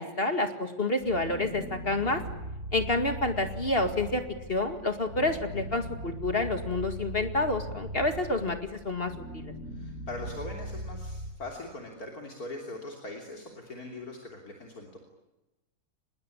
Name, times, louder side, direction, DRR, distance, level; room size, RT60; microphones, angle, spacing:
voice 1, 0.0-2.2 2.7-4.2 4.5-9.5, left 2 dB, 35° left, 7 dB, 2.3 m, -29 dB
sound 1, 1.0-11.3, equal, 50° right, 4.4 m, -40 dB
voice 2, 9.7-15.0, left 2 dB, 60° left, 1 dB, 3.6 m, -41 dB
25.5 x 21.0 x 9.9 m, 1.0 s
omnidirectional pair, 1.7 m